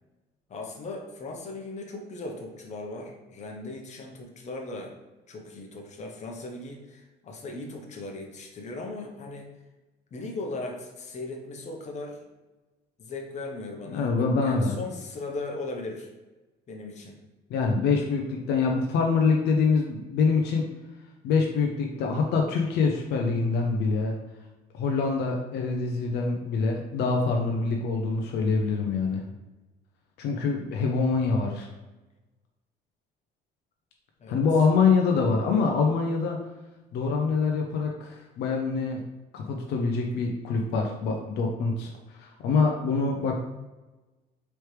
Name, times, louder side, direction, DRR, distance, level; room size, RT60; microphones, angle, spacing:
voice 1, 0.5-4.9 5.3-9.5 10.1-12.2 13.0-14.1 14.4-16.1 16.7-17.2 34.2-34.4, left 2 dB, 45° left, 1 dB, 0.9 m, -38 dB
voice 2, 13.9-14.7 17.5-20.7 21.2-24.1 24.8-29.2 30.2-31.7 34.3-36.4 36.9-39.0 39.3-43.4, left 4 dB, 80° left, 1 dB, 0.6 m, -25 dB
4.5 x 3.2 x 3.2 m, 1.1 s
cardioid pair, 110°, 17 cm